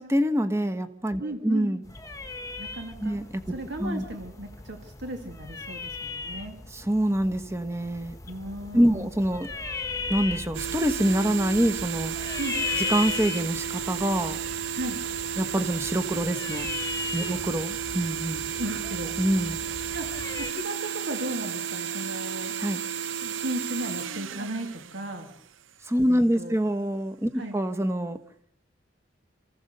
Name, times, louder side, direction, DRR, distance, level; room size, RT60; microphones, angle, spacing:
voice 1, 0.0-1.8 3.0-3.4 3.8-4.0 6.7-8.2 8.7-9.5 10.1-12.1 12.9-14.4 15.4-16.7 17.1-18.4 19.2-19.6 22.6-22.8 25.9-28.2, equal, 15° right, 9 dB, 1.2 m, -25 dB
voice 2, 1.2-1.7 2.6-3.2 3.5-6.6 8.3-9.1 12.4-12.6 14.8-15.0 17.3-17.4 18.6-19.2 19.9-22.6 23.2-25.3 26.1-26.6 27.3-27.6, right 1 dB, 65° right, 4 dB, 2.2 m, -36 dB
sound 1, 1.8-20.5, left 4 dB, 15° left, 1.2 m, -37 dB
sound 2, 10.5-25.8, right 8 dB, 85° right, 0.7 m, -33 dB
28.0 x 15.5 x 6.7 m, 0.76 s
head